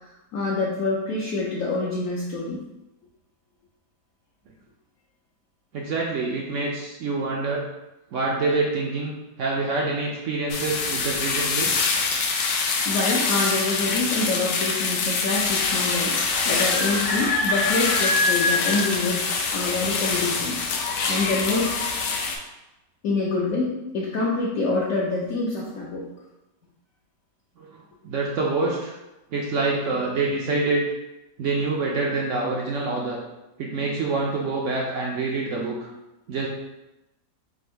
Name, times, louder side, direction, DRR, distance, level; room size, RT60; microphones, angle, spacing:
voice 1, 0.0-2.6 12.8-16.1 16.4-19.3 19.5-20.6 21.1-21.7 23.0-26.1, left 3 dB, 65° left, -5 dB, 1.0 m, -26 dB
voice 2, 5.7-7.6 8.1-11.7 27.6-27.8 28.0-28.9 29.3-30.8 31.4-33.2 33.6-35.9 36.3-36.5, right 3 dB, 70° right, -2 dB, 0.7 m, -26 dB
sound 1, 10.5-22.4, left 4 dB, 85° left, 1.2 m, -24 dB
3.6 x 2.6 x 4.3 m, 0.98 s
omnidirectional pair, 1.8 m